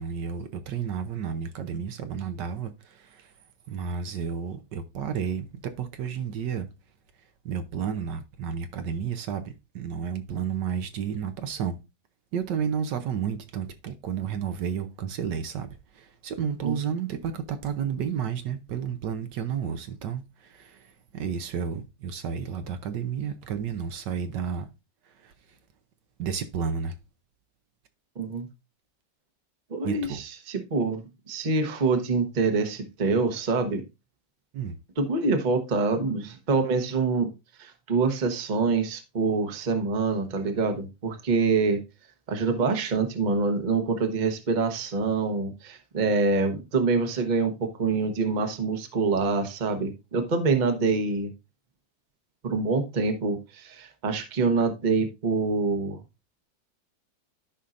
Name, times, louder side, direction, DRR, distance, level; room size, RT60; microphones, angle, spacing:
voice 1, 0.0-3.3 3.7-6.7 7.4-11.8 12.3-24.7 25.2-25.3 26.2-26.9 29.8-30.2 34.5-34.8, right 7 dB, 70° right, 1.4 m, -32 dB
voice 2, 28.2-28.5 29.7-33.8 35.0-37.3 37.6-41.8 42.3-51.3 52.4-56.0, right 4 dB, 30° right, 1.0 m, -26 dB
13.0 x 5.4 x 2.5 m
omnidirectional pair, 2.0 m